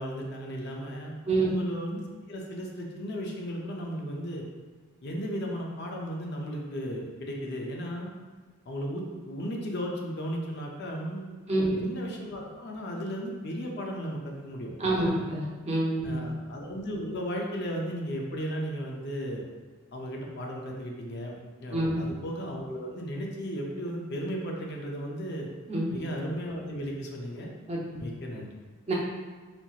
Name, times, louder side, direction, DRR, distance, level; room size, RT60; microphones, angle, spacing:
voice 1, 0.0-4.4 5.0-8.1 8.7-11.3 11.5-15.3 16.0-19.4 19.9-25.5 25.9-27.5 28.0-28.5, equal, 55° left, 0 dB, 0.5 m, -35 dB
voice 2, 11.5-11.9 14.8-16.3 21.7-22.1 25.7-26.0 27.7-28.0 28.9-29.0, right 2 dB, 30° right, -4 dB, 0.7 m, -28 dB
4.3 x 2.8 x 2.4 m, 1.4 s
head